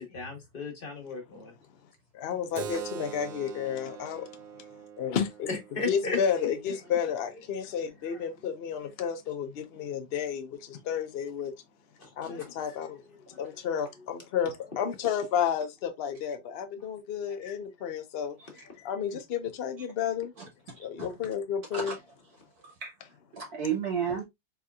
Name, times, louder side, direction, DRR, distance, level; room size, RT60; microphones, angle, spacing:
voice 1, 0.0-1.5 5.5-6.5 8.1-8.2 8.8-8.9 12.0-12.9 13.3-13.5 17.2-17.4 18.3-18.4, left 3 dB, 30° left, 1.3 m, -37 dB
voice 2, 2.1-4.3 5.0-5.5 5.9-11.5 12.2-13.0 13.4-18.4 18.8-20.3 20.8-21.9, left 8 dB, 85° left, 0.5 m, -31 dB
Keyboard (musical), 2.5-7.7, right 7 dB, 90° right, 1.3 m, -44 dB
voice 3, 20.4-21.1 21.7-21.9 22.8-22.9 23.4-24.2, right 7 dB, 55° right, 1.6 m, -33 dB
4.3 x 3.5 x 2.3 m
omnidirectional pair, 2.0 m